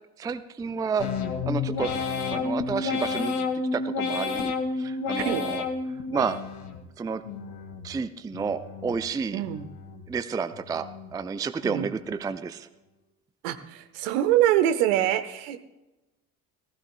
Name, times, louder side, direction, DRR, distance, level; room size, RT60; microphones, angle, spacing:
voice 1, 0.2-1.1 1.4-1.9 2.3-3.3 3.7-5.6 6.1-6.4 7.0-7.2 7.8-9.4 10.1-10.9 11.1-12.7, right 5 dB, 10° right, 12 dB, 0.4 m, -30 dB
sound 1, 1.0-6.8 7.2-7.9 8.3-9.0 9.4-10.1 10.5-11.1 11.6-12.2, left 4 dB, 55° left, 1.6 m, -31 dB
voice 2, 9.3-9.7 11.6-11.9 13.4-15.6, right 12 dB, 60° right, 11 dB, 1.1 m, -24 dB
19.0 x 15.0 x 2.3 m, 1.0 s
figure-of-eight pair, 55°, 44 cm